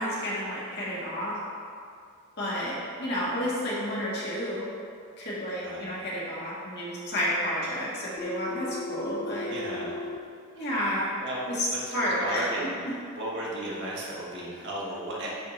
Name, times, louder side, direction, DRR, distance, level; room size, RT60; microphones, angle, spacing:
voice 1, 0.0-1.3 2.4-2.7 3.0-4.7 5.2-9.5 10.5-11.1 11.9-12.4, equal, 50° left, -7 dB, 1.8 m, -30 dB
voice 2, 5.6-5.9 9.5-9.9 10.6-10.7 11.2-11.4 11.7-12.8 13.1-15.3, right 1 dB, 50° right, -5 dB, 1.5 m, -35 dB
Telephone, 8.2-10.2, left 3 dB, 15° left, 0.3 m, -35 dB
10.0 x 3.7 x 4.2 m, 2.3 s
head